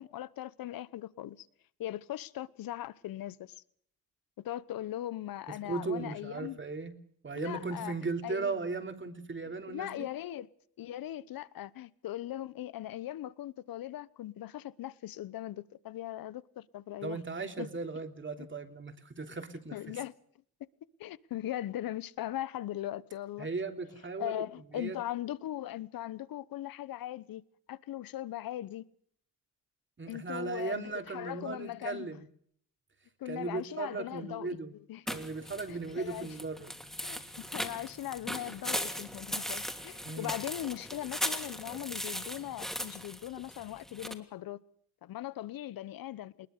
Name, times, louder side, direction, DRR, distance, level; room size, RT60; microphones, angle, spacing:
voice 1, 0.0-1.5 1.8-3.6 4.4-6.6 7.3-7.9 8.2-8.6 9.4-10.5 10.8-17.2 17.6-17.7 19.7-20.1 21.0-23.5 24.2-27.4 27.7-28.9 30.1-32.2 33.2-34.6 34.9-35.1 35.7-36.4 37.0-44.6 45.0-46.5, left 13 dB, 70° left, 1.0 m, -39 dB
voice 2, 5.6-6.9 7.2-10.1 17.0-19.7 23.4-24.4 24.7-25.0 30.0-32.3 33.3-34.7 35.1-36.8 40.0-40.3, right 4 dB, 35° right, 3.2 m, -37 dB
sound 1, 35.1-44.1, equal, ahead, 3.0 m, -38 dB
21.0 x 20.0 x 6.7 m
supercardioid pair, 65°, 36 cm